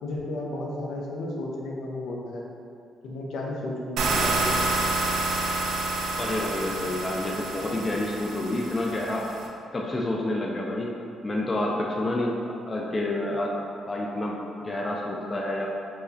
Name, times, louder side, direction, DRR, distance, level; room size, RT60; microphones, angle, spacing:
voice 1, 0.0-2.4 3.0-4.7, left 1 dB, 80° left, -2 dB, 0.5 m, -33 dB
sound 1, 4.0-9.5, right 2 dB, 85° right, 0.3 m, -28 dB
voice 2, 6.2-9.3 9.7-10.9 11.2-15.7, left 1 dB, 30° left, -2 dB, 0.4 m, -29 dB
4.7 x 2.1 x 2.7 m, 2.5 s
cardioid pair, 90°, 0 cm